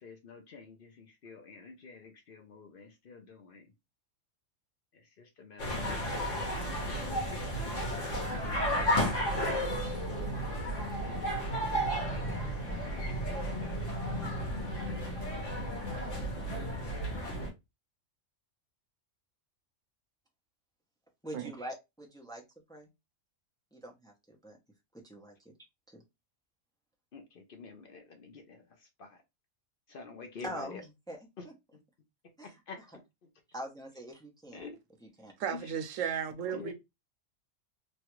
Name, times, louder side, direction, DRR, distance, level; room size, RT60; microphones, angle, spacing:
voice 1, 0.0-3.7 5.2-7.2 7.5-7.6 8.3-9.3 11.0-14.0 27.1-28.6 29.0-29.1 29.9-30.8 31.4-31.5 32.7-32.8 34.5-34.8 35.5-35.6 36.5-36.7, left 4 dB, 55° left, 0.7 m, -49 dB
sound 1, 5.6-17.5, equal, 70° left, 1.4 m, -33 dB
voice 2, 21.2-22.4 22.7-22.9 23.7-24.6 24.9-25.5 25.9-26.0 30.4-31.2 31.4-31.5 32.4-32.6 33.5-34.7 35.0-35.3, right 1 dB, 5° left, 0.4 m, -44 dB
voice 3, 35.4-36.7, right 8 dB, 90° right, 1.0 m, -34 dB
3.1 x 2.4 x 2.9 m
omnidirectional pair, 1.3 m